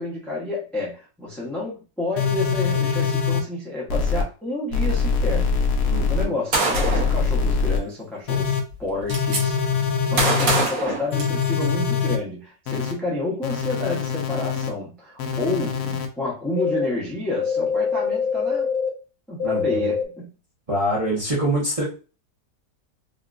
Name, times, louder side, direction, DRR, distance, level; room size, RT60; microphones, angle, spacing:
voice 1, 0.0-5.6 6.0-9.6 10.1-18.7 19.3-20.3, left 2 dB, ahead, -4 dB, 0.5 m, -30 dB
sound 1, 2.2-3.4 3.9-4.2 4.7-6.2 6.7-7.8 8.3-8.6 9.1-10.6 11.1-12.2 12.7-12.9 13.4-14.7 15.2-16.1 16.6-16.9 17.4-18.9 19.4-20.0, left 6 dB, 65° left, 0.9 m, -23 dB
voice 2, 5.8-6.3 19.4-19.9 20.7-21.8, right 1 dB, 25° right, -6 dB, 0.8 m, -25 dB
Gunshot gunfire, 6.5-7.2 8.3-8.4 8.7-9.4 10.2-11.7, right 3 dB, 60° right, 1.3 m, -23 dB
3.6 x 2.3 x 2.5 m, 0.34 s
omnidirectional pair, 1.8 m